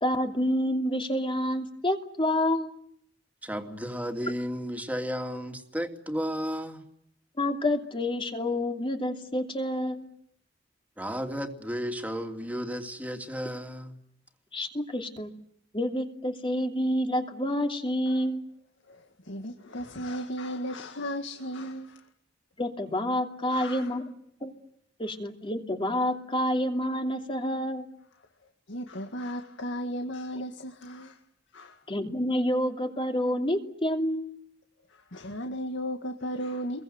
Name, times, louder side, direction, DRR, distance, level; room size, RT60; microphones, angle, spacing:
voice 1, 0.0-2.8 7.4-10.1 14.5-15.3 15.7-18.4 22.6-24.1 24.4-24.5 25.0-27.9 31.9-34.3, left 1 dB, 30° left, 2.8 m, -28 dB
voice 2, 3.4-6.8 11.0-13.9, equal, 10° right, 2.9 m, -33 dB
voice 3, 18.9-22.1 23.5-23.9 28.7-31.2 31.5-31.8 34.9-36.8, equal, 90° left, 2.0 m, -35 dB
29.5 x 22.5 x 7.9 m
head